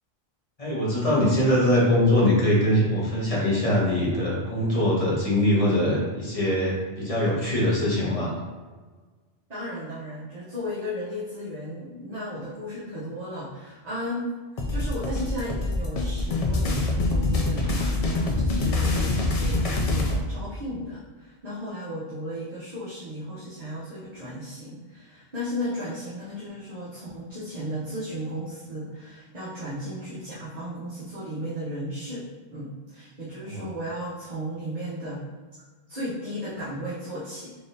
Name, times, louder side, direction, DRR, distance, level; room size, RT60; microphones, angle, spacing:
voice 1, 0.6-8.4 33.5-33.6, left 1 dB, 35° left, -6 dB, 1.1 m, -22 dB
voice 2, 9.5-14.3 14.7-35.2 35.9-37.6, equal, 40° right, -10 dB, 0.9 m, -35 dB
sound 1, 14.6-20.2, left 2 dB, 50° left, 0.4 m, -25 dB
3.8 x 3.4 x 2.7 m, 1.4 s
omnidirectional pair, 1.1 m